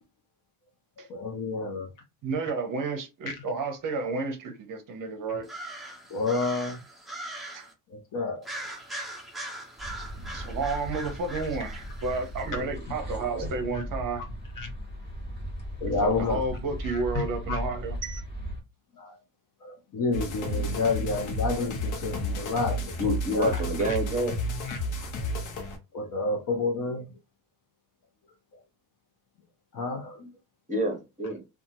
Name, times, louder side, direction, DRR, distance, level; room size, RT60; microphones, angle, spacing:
voice 1, 1.0-1.9 6.1-6.8 7.9-8.5 10.5-10.6 12.5-12.6 13.7-13.8 14.6-14.7 15.8-16.4 16.8-17.6 19.0-19.1 19.6-23.5 23.9-24.0 24.7-25.1 25.9-27.1 28.5-28.6 29.7-30.3, left 3 dB, 45° left, 0.7 m, -30 dB
voice 2, 2.2-5.5 7.5-7.7 10.3-14.2 16.0-18.2, right 3 dB, 45° right, 0.7 m, -31 dB
sound 1, 5.4-7.7 8.4-12.5, right 1 dB, ahead, 0.4 m, -40 dB
sound 2, 9.8-18.6, equal, 25° left, 1.3 m, -37 dB
voice 3, 13.2-13.6 23.0-24.3 30.7-31.4, right 1 dB, 15° right, 1.0 m, -29 dB
sound 3, 20.1-25.8, left 1 dB, 80° left, 0.9 m, -32 dB
2.7 x 2.4 x 2.7 m
cardioid pair, 140°, 47 cm